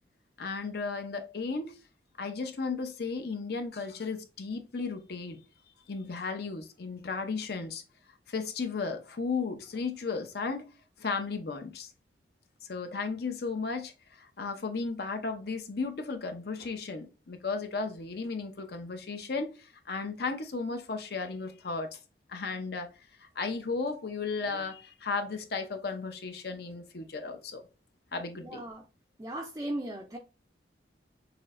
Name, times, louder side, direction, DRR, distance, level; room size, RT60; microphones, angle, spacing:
voice 1, 0.4-1.7 2.2-5.4 5.9-7.8 8.3-10.7 11.0-11.9 12.6-22.0 22.3-22.9 23.2-27.6 28.1-28.6, left 4 dB, 60° left, 0.7 m, -35 dB
voice 2, 28.4-28.8 29.2-30.2, right 1 dB, 20° right, 0.4 m, -37 dB
5.9 x 2.7 x 2.5 m
head